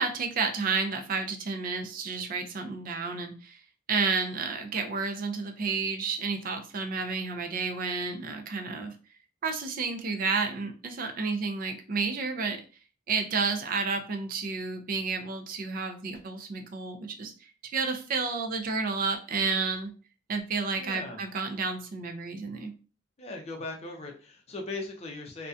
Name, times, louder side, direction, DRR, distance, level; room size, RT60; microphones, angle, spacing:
voice 1, 0.0-3.6 3.9-8.9 9.4-12.6 13.1-17.3 17.7-19.9 20.3-22.7, right 4 dB, 45° right, 5 dB, 0.4 m, -31 dB
voice 2, 20.7-21.2 23.2-25.5, left 2 dB, 35° left, 2 dB, 0.5 m, -39 dB
2.5 x 2.1 x 2.4 m, 0.36 s
head